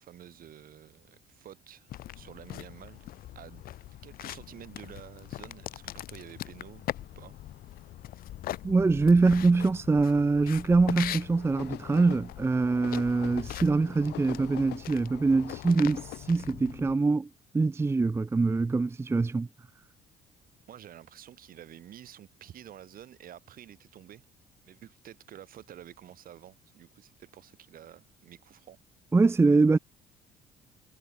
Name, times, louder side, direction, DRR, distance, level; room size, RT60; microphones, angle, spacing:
voice 1, 0.0-1.9 2.1-3.6 4.0-7.4 20.7-24.2 24.6-28.8, right 11 dB, 55° right, 2.7 m, -50 dB
sound 1, 1.9-17.0, left 14 dB, 60° left, 0.7 m, -42 dB
voice 2, 8.6-17.3 17.5-19.5 29.1-29.8, right 3 dB, 15° right, 0.6 m, -24 dB
sound 2, 10.9-16.3, left 17 dB, 85° left, 4.7 m, -44 dB
cardioid pair, 110°, 17 cm